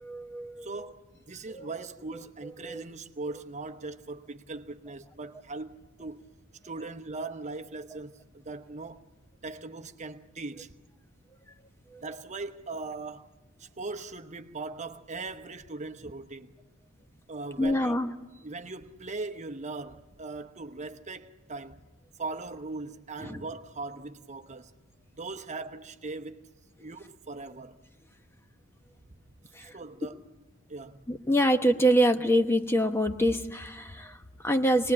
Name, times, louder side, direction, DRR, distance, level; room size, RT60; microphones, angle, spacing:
voice 1, 0.0-0.7 1.5-1.7 2.6-2.8 11.9-12.0 17.6-18.1 23.2-23.5 29.5-29.7 31.1-34.9, equal, 10° left, 1.0 m, -26 dB
voice 2, 0.6-6.3 6.6-9.0 9.4-10.8 12.0-13.3 13.6-16.6 17.3-18.0 18.4-21.8 22.2-24.7 25.2-26.4 26.8-27.8 29.6-30.2 30.7-31.1, right 3 dB, 35° right, 0.9 m, -39 dB
26.0 x 19.5 x 9.8 m
head